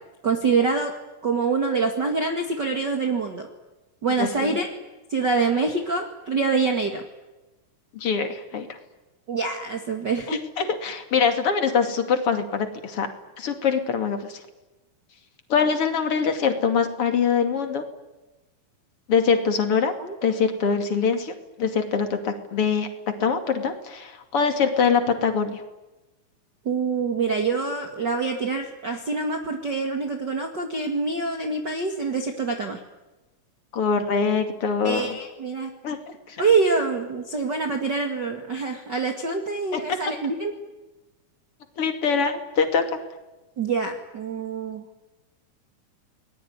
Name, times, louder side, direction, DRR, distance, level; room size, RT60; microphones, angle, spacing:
voice 1, 0.2-0.9 1.2-3.5 4.0-4.7 5.1-7.0 9.3-10.4 20.0-20.2 26.7-32.8 34.8-35.7 36.4-40.5 43.6-44.8, right 4 dB, 35° right, 4 dB, 2.3 m, -25 dB
voice 2, 4.2-4.5 7.9-8.7 10.3-13.1 13.4-14.4 15.5-17.8 19.1-19.9 20.2-21.3 21.6-22.9 23.2-25.6 33.7-35.2 35.8-36.0 36.3-36.4 39.7-40.0 41.8-42.8, left 6 dB, 45° left, 7 dB, 3.2 m, -23 dB
30.0 x 20.5 x 9.6 m, 1.1 s
omnidirectional pair, 3.8 m